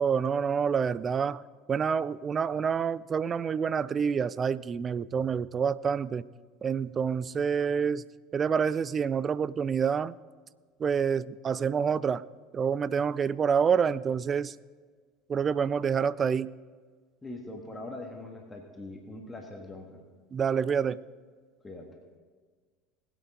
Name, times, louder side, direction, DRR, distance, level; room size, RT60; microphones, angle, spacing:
voice 1, 0.0-1.4 1.7-6.2 6.6-8.0 8.3-10.1 10.8-12.2 12.5-14.5 15.3-16.5 20.3-21.0, right 6 dB, 30° right, 19 dB, 0.4 m, -27 dB
voice 2, 17.2-20.0 21.6-22.0, left 2 dB, 15° left, 2 dB, 1.8 m, -42 dB
20.0 x 8.4 x 3.8 m, 1.5 s
figure-of-eight pair, 70°, 0 cm